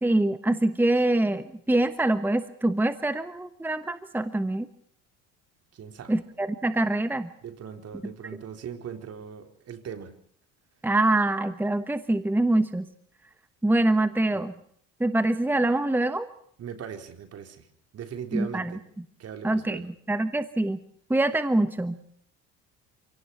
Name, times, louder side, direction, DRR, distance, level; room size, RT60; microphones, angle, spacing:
voice 1, 0.0-4.7 6.1-7.3 10.8-12.9 13.6-14.5 15.0-16.3 18.3-18.7 19.4-20.8 21.1-22.0, right 2 dB, 5° right, 11 dB, 1.2 m, -24 dB
voice 2, 5.7-6.2 7.4-10.1 14.3-14.5 16.6-17.7 17.9-18.8 19.2-19.9, right 8 dB, 50° right, 7 dB, 4.0 m, -39 dB
27.5 x 18.0 x 5.8 m, 0.65 s
cardioid pair, 100°, 31 cm